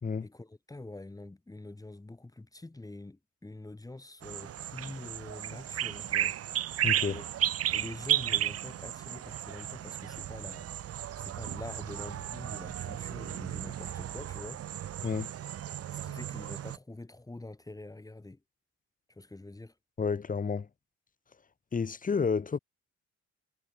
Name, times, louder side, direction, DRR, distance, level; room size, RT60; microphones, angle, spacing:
voice 1, 0.2-6.4 7.1-7.2 7.7-14.6 15.7-18.4 19.1-19.7, left 2 dB, 10° left, 1.4 m, -45 dB
sound 1, 4.2-16.8, right 11 dB, 50° right, 0.7 m, -34 dB
voice 2, 6.8-7.2 15.0-15.3 20.0-20.7 21.7-22.6, left 5 dB, 25° left, 1.1 m, -30 dB
cardioid pair, 90°, 30 cm